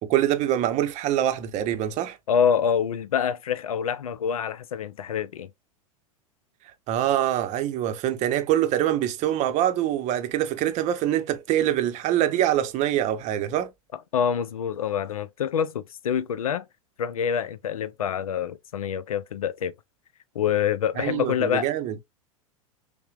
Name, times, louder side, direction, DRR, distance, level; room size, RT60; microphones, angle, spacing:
voice 1, 0.0-2.2 6.9-13.7 21.0-21.9, right 12 dB, 40° right, 0.7 m, -24 dB
voice 2, 2.3-5.5 14.1-16.6 17.0-19.7 20.4-21.7, left 8 dB, 85° left, 0.4 m, -26 dB
5.6 x 2.1 x 2.3 m
hypercardioid pair, 95°, 18 cm